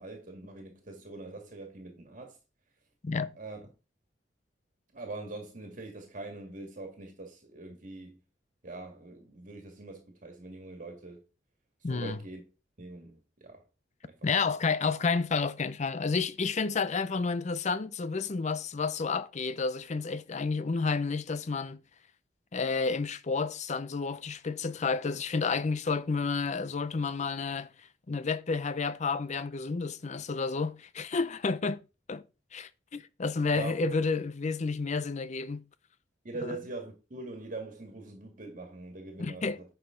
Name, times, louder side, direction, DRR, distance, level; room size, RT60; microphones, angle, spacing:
voice 1, 0.0-2.4 3.3-3.6 4.9-8.2 8.6-11.2 11.9-12.4 12.8-13.6 14.0-14.2 33.5-34.0 36.2-39.6, right 2 dB, 45° right, 1.9 m, -42 dB
voice 2, 11.8-12.2 14.2-21.8 22.5-27.7 28.1-31.8 32.1-32.2 32.5-35.6 36.4-36.5 39.2-39.6, left 4 dB, 40° left, 0.5 m, -30 dB
10.0 x 5.7 x 3.7 m
head